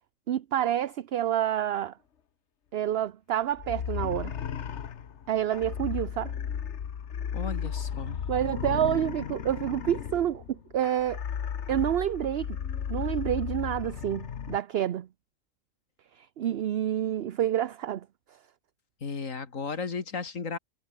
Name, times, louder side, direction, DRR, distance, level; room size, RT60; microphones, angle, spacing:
voice 1, 0.3-1.9 2.7-4.4 5.3-6.3 8.3-11.2 11.7-12.6 12.9-15.1 16.2-18.1, right 11 dB, 60° right, 0.8 m, -28 dB
sound 1, 3.6-14.6, left 8 dB, 65° left, 1.3 m, -35 dB
voice 2, 7.3-8.2 19.0-20.6, left 5 dB, 80° left, 2.6 m, -34 dB
omnidirectional pair, 1.3 m